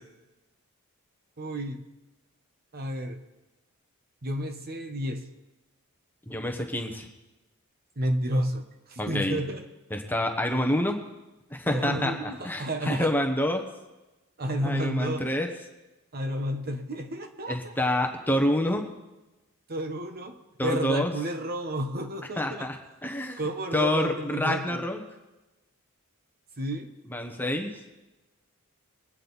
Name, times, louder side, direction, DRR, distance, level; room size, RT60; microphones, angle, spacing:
voice 1, 1.4-1.8 2.7-3.2 4.2-5.3 8.0-8.6 8.9-9.6 11.7-13.1 14.4-15.3 16.1-17.8 19.7-22.7 23.4-24.8 26.6-26.9, right 1 dB, 45° right, 6 dB, 1.0 m, -31 dB
voice 2, 6.3-7.1 9.0-9.4 9.9-11.0 11.5-12.1 12.4-13.7 14.6-15.5 17.5-18.9 20.6-21.1 22.4-22.8 23.0-23.4 23.7-25.0 27.1-27.7, left 1 dB, 10° left, 3 dB, 1.1 m, -27 dB
22.5 x 8.7 x 4.1 m, 1.1 s
head